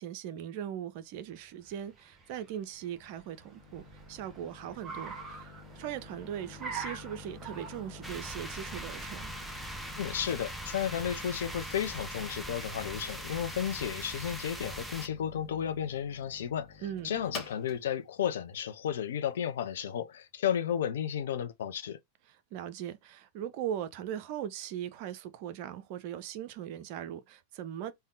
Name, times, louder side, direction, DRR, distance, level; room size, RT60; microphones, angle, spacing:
voice 1, 0.0-9.3 16.8-17.2 22.3-27.9, right 10 dB, 45° right, 0.5 m, -39 dB
Car, 1.3-11.5, right 5 dB, 20° right, 1.0 m, -47 dB
sound 1, 2.2-19.9, left 4 dB, 30° left, 1.4 m, -50 dB
sound 2, 8.0-15.1, right 1 dB, ahead, 0.6 m, -41 dB
voice 2, 10.0-22.0, left 9 dB, 60° left, 0.5 m, -33 dB
3.5 x 2.2 x 3.7 m
figure-of-eight pair, 90°, 0 cm